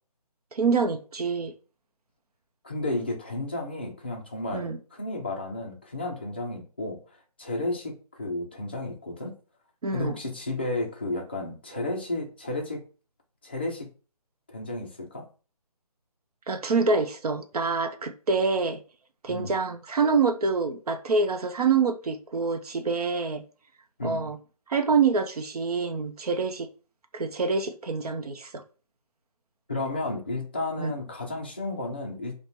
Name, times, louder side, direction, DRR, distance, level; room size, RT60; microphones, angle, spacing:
voice 1, 0.5-1.5 4.5-4.8 9.8-10.2 16.5-18.8 19.2-23.4 24.0-24.4 24.7-26.7 27.1-28.5 30.8-30.9, right 4 dB, 70° right, 0.6 m, -26 dB
voice 2, 2.6-7.0 7.4-9.3 9.9-12.8 13.4-13.9 14.5-15.3 19.3-19.6 24.0-24.3 29.7-32.4, left 2 dB, 15° left, 0.4 m, -32 dB
5.2 x 2.1 x 3.0 m
figure-of-eight pair, 165°, 20 cm